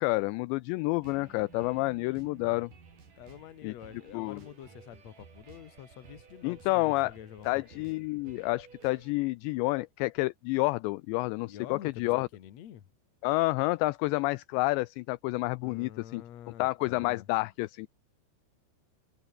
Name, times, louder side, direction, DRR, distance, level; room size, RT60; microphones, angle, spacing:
voice 1, 0.0-2.7 3.6-3.7 4.1-4.4 6.4-7.1 7.5-12.3 13.2-16.2 16.6-17.9, left 22 dB, 90° left, 2.5 m, -29 dB
sound 1, 1.0-9.1, right 5 dB, 45° right, 5.9 m, -54 dB
voice 2, 3.2-7.9 11.5-12.9 15.6-17.3, left 11 dB, 60° left, 1.8 m, -47 dB
omnidirectional pair, 5.6 m